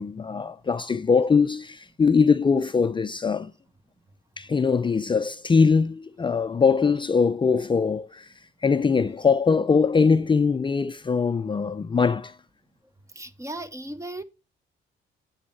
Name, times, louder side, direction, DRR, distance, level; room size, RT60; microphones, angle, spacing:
voice 1, 0.0-3.5 4.4-8.3 8.6-12.4, left 5 dB, 25° left, 0.5 m, -22 dB
voice 2, 13.2-14.2, right 1 dB, 15° right, 1.0 m, -36 dB
9.4 x 7.3 x 4.1 m
cardioid pair, 90°, 20 cm